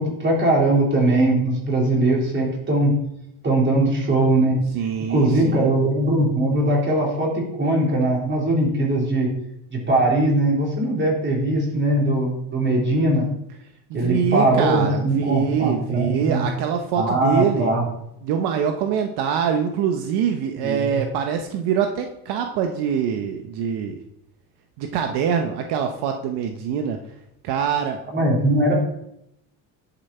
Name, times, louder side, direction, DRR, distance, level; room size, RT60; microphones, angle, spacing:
voice 1, 0.0-2.9 3.4-4.6 5.1-9.3 9.7-13.3 13.9-16.5 16.9-17.8 20.6-21.0 28.1-28.7, right 1 dB, 30° right, -2 dB, 3.9 m, -20 dB
voice 2, 4.7-5.7 13.9-17.7 18.2-24.0 24.8-27.0 27.4-28.3, right 7 dB, 75° right, 5 dB, 1.1 m, -24 dB
11.0 x 7.0 x 4.4 m, 0.79 s
cardioid pair, 120°, 40 cm